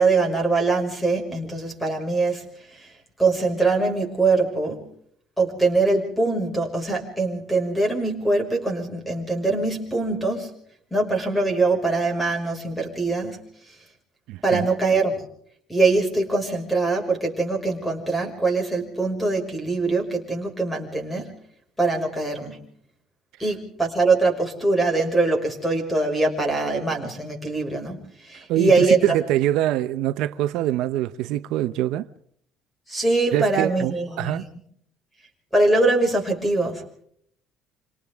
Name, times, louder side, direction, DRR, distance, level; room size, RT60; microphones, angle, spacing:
voice 1, 0.0-2.4 2.7-2.9 3.2-4.9 5.4-10.5 10.9-13.4 14.4-15.2 15.7-21.3 21.8-22.6 23.4-28.0 28.2-29.0 32.9-34.5 35.5-36.8, right 3 dB, 5° left, 5.8 m, -23 dB
voice 2, 14.3-14.7 28.5-32.1 33.3-34.4, right 13 dB, 75° right, 0.8 m, -24 dB
28.0 x 26.0 x 3.7 m
cardioid pair, 160°, 0 cm